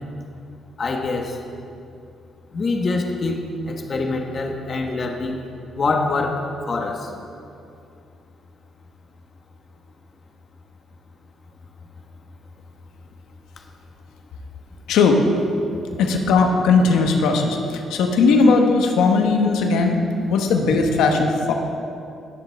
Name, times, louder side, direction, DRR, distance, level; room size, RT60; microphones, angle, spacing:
voice 1, 0.8-1.4 2.5-5.4 5.7-7.1, left 3 dB, 45° left, 3 dB, 1.3 m, -25 dB
voice 2, 14.9-15.2 16.0-20.0 20.3-21.5, left 4 dB, 90° left, 3 dB, 1.2 m, -18 dB
19.0 x 7.1 x 3.5 m, 2.5 s
cardioid pair, 90°, 0 cm